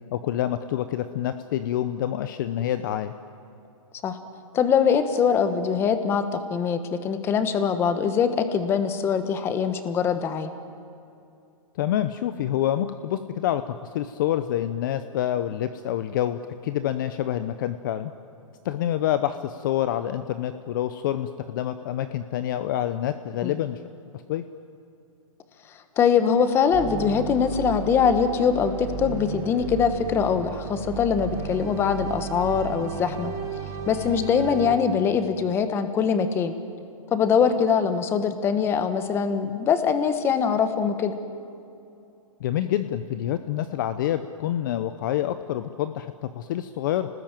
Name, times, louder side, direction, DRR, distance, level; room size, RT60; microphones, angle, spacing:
voice 1, 0.1-3.1 11.8-18.1 18.6-23.8 24.3-24.4 42.4-47.1, left 11 dB, 35° left, 11 dB, 0.8 m, -27 dB
voice 2, 4.5-10.5 23.4-23.5 26.0-33.3 33.9-36.5 37.1-41.1, left 6 dB, 15° left, 10 dB, 1.3 m, -23 dB
sound 1, 26.7-34.8, right 6 dB, 20° right, 2.0 m, -34 dB
29.5 x 19.5 x 9.0 m, 2.7 s
hypercardioid pair, 165°, 18 cm